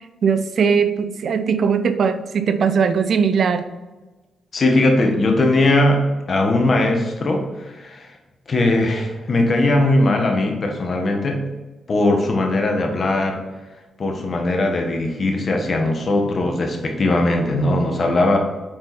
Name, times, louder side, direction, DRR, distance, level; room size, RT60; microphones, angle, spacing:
voice 1, 0.2-3.6, right 6 dB, 65° right, 10 dB, 0.6 m, -19 dB
voice 2, 4.5-8.1 8.5-11.4 11.9-13.4 14.0-18.4, left 2 dB, 50° left, 3 dB, 1.5 m, -19 dB
7.5 x 4.6 x 4.5 m, 1.2 s
supercardioid pair, 55°, 0 cm